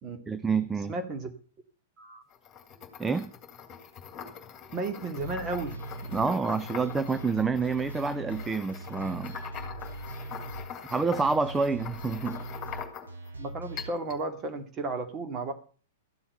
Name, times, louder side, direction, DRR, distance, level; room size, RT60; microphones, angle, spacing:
voice 1, 0.3-0.9 3.0-3.3 6.1-9.4 10.9-12.4, right 4 dB, 10° right, 0.6 m, -28 dB
voice 2, 0.9-1.3 2.0-2.2 4.7-6.4 13.4-15.5, right 3 dB, 25° right, 2.5 m, -34 dB
sound 1, 2.3-13.3 13.8-14.2, left 8 dB, 25° left, 2.7 m, -43 dB
sound 2, 5.2-13.9, right 2 dB, 70° right, 2.6 m, -41 dB
14.0 x 7.2 x 8.2 m
figure-of-eight pair, 105°, 0 cm